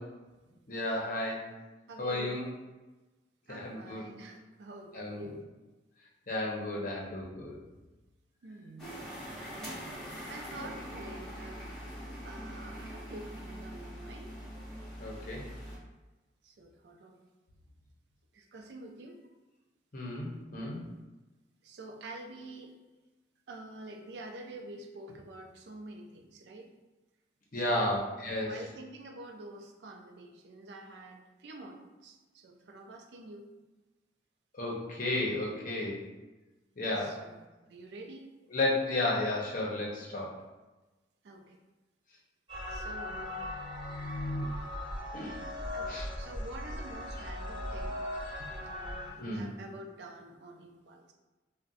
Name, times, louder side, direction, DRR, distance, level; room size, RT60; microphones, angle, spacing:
voice 1, 0.7-1.5 2.0-2.4 3.5-4.1 4.9-5.2 6.3-7.6 10.6-10.7 15.0-15.5 19.9-20.8 27.5-28.5 34.5-36.0 36.8-37.2 38.5-40.3 45.1-45.4 45.9-46.1 49.2-49.5, left 2 dB, 50° left, -3 dB, 0.7 m, -33 dB
voice 2, 1.9-2.3 3.5-5.4 8.4-9.9 10.3-14.4 16.4-17.2 18.3-19.2 21.6-22.7 23.5-26.7 27.5-28.0 28.4-33.5 37.0-38.3 41.2-41.6 42.7-43.4 45.7-51.1, right 2 dB, 65° right, 3 dB, 0.4 m, -48 dB
sound 1, 8.8-15.8, equal, 5° left, 1.1 m, -43 dB
sound 2, 42.5-49.1, left 1 dB, 25° right, 1.0 m, -38 dB
2.5 x 2.1 x 3.8 m, 1.1 s
head